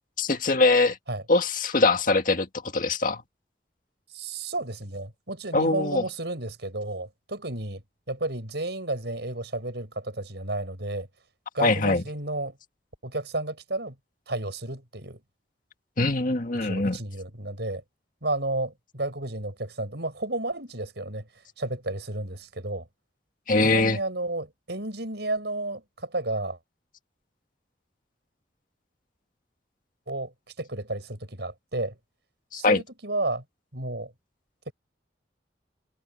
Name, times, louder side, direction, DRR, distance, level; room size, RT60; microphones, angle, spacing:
voice 1, 0.2-1.0 1.3-2.5 2.7-3.2 5.5-6.0 11.6-12.0 16.0-17.0 23.5-24.0 32.5-32.8, left 3 dB, 50° left, 1.9 m, -22 dB
voice 2, 4.1-7.8 8.1-11.1 11.5-12.6 13.0-14.0 14.3-15.2 16.6-17.8 18.2-21.3 21.6-22.9 23.6-26.6 30.1-30.3 30.6-32.0 32.5-33.4 33.7-34.1 34.7-34.8, right 2 dB, 65° right, 7.3 m, -32 dB
head